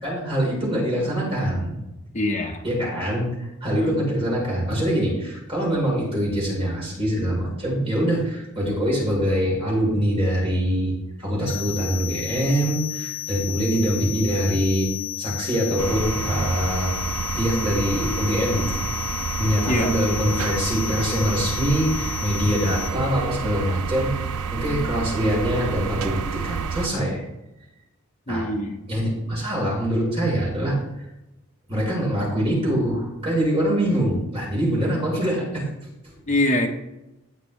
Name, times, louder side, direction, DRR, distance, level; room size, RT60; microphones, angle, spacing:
voice 1, 0.0-1.8 2.6-3.3 3.6-10.9 11.2-14.9 15.2-16.9 17.3-18.9 19.4-24.1 24.5-27.2 28.3-28.5 28.9-30.8 31.7-35.6, equal, 25° right, -5 dB, 4.2 m, -24 dB
voice 2, 2.1-2.6 3.8-4.0 19.7-19.9 28.3-28.9 36.3-36.7, left 1 dB, 35° left, 2 dB, 1.3 m, -24 dB
sound 1, 11.5-22.9, left 15 dB, 75° left, 2.3 m, -33 dB
sound 2, 15.8-26.9, right 6 dB, 80° right, 0.5 m, -29 dB
17.0 x 6.0 x 3.3 m, 0.92 s
head